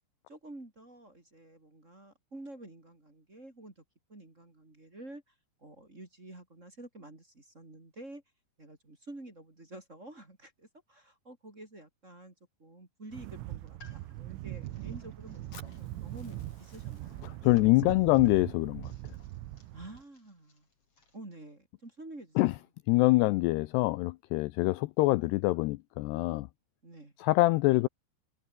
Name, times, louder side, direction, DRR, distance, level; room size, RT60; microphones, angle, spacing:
voice 1, 0.3-3.8 4.1-5.3 5.6-8.2 8.6-12.3 12.6-18.3 19.7-20.7 21.1-22.6 24.6-24.8 26.8-27.1, right 2 dB, 15° right, 3.2 m, -49 dB
sound 1, 13.1-20.0, right 16 dB, 85° right, 3.7 m, -41 dB
sound 2, 13.5-21.2, left 3 dB, 30° left, 6.7 m, -62 dB
Fire, 15.5-19.5, left 5 dB, 45° left, 6.4 m, -59 dB
voice 2, 17.5-18.9 22.4-22.5 22.9-26.5 27.2-27.9, left 20 dB, 90° left, 2.3 m, -25 dB
omnidirectional pair, 5.5 m